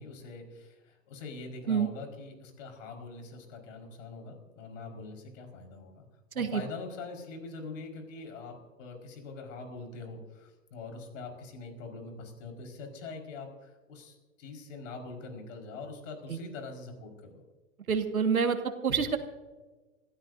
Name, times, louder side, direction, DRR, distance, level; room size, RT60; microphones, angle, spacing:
voice 1, 0.0-6.1 6.3-17.4, left 3 dB, 60° left, 3 dB, 5.0 m, -43 dB
voice 2, 17.9-18.6 18.8-19.2, right 6 dB, 90° right, 6 dB, 1.9 m, -27 dB
25.0 x 16.5 x 2.7 m, 1.3 s
hypercardioid pair, 115°, 42 cm